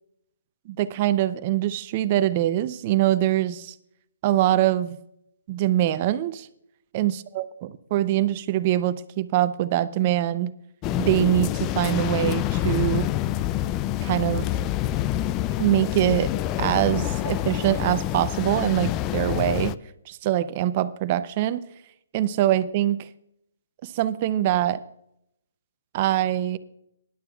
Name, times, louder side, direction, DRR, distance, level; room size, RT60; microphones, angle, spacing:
voice 1, 0.7-3.7 4.2-5.0 5.5-6.5 6.9-7.5 7.9-10.5 11.0-13.1 14.0-14.5 15.6-16.3 16.6-19.7 20.1-21.6 22.1-23.1 23.8-24.8 25.9-26.6, right 13 dB, 35° right, 0.6 m, -23 dB
sound 1, 10.8-19.8, left 13 dB, 25° left, 0.3 m, -27 dB
19.5 x 11.0 x 2.3 m
hypercardioid pair, 150°, 0 cm